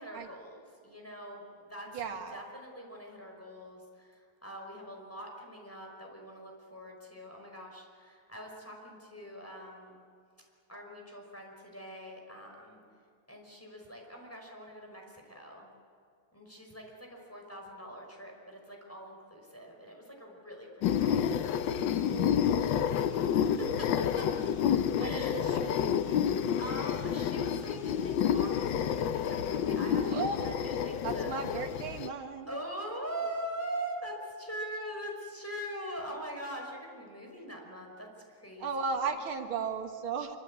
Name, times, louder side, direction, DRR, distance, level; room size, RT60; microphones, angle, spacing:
voice 1, 0.0-10.0 10.7-12.8 13.3-15.7 16.3-21.8 22.6-24.3 24.7-25.4 26.6-31.4 32.5-38.7, right 1 dB, 5° left, 0 dB, 5.4 m, -43 dB
voice 2, 1.9-2.4 22.1-22.6 24.9-26.4 30.0-30.8 31.0-32.6 38.6-40.4, right 5 dB, 80° right, 5 dB, 2.3 m, -36 dB
sound 1, 20.8-32.1, left 8 dB, 70° left, 1.5 m, -29 dB
26.0 x 24.5 x 8.7 m, 2.2 s
omnidirectional pair, 2.3 m